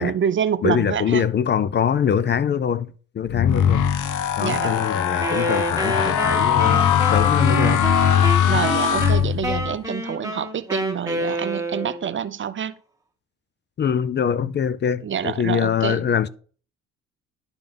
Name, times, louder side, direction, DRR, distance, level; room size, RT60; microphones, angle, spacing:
voice 1, 0.0-1.2 4.4-4.8 8.5-12.7 15.0-16.1, right 8 dB, 40° right, 0.6 m, -26 dB
voice 2, 0.6-3.9 4.4-7.9 13.8-16.3, left 8 dB, 35° left, 0.4 m, -23 dB
sound 1, 3.3-9.7, left 9 dB, 80° left, 0.8 m, -20 dB
Wind instrument woodwind instrument, 5.2-12.1, right 2 dB, 10° right, 1.4 m, -28 dB
10.5 x 3.7 x 5.2 m
cardioid pair, 90°, 30 cm